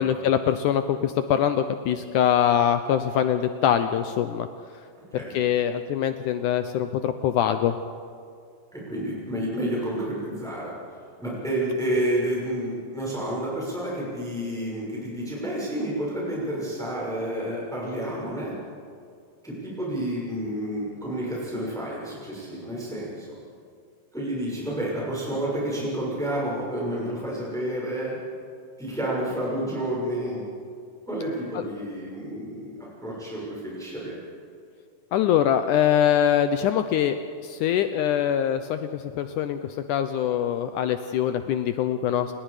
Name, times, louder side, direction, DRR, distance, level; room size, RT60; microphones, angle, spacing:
voice 1, 0.0-4.5 5.3-7.8 31.5-31.7 35.1-37.2 37.4-42.3, left 9 dB, 80° left, 9 dB, 1.8 m, -23 dB
voice 2, 8.7-10.7 11.2-18.5 19.4-23.3 24.1-28.1 28.8-30.4 31.1-34.2, right 1 dB, ahead, -5 dB, 5.9 m, -30 dB
28.5 x 20.5 x 5.0 m, 2.3 s
omnidirectional pair, 4.3 m